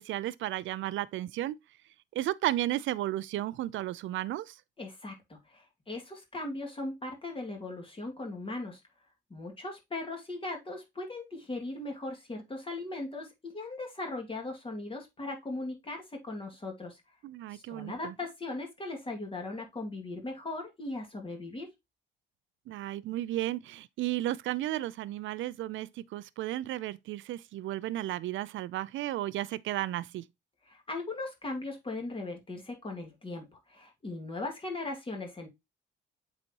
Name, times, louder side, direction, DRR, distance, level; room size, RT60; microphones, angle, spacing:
voice 1, 0.0-1.6 2.1-4.5 17.2-18.1 22.7-30.3, right 14 dB, 75° right, 0.5 m, -33 dB
voice 2, 4.8-8.8 9.3-17.0 17.5-21.7 30.7-35.5, left 2 dB, 25° left, 2.3 m, -38 dB
7.8 x 4.2 x 2.9 m
cardioid pair, 90°, 20 cm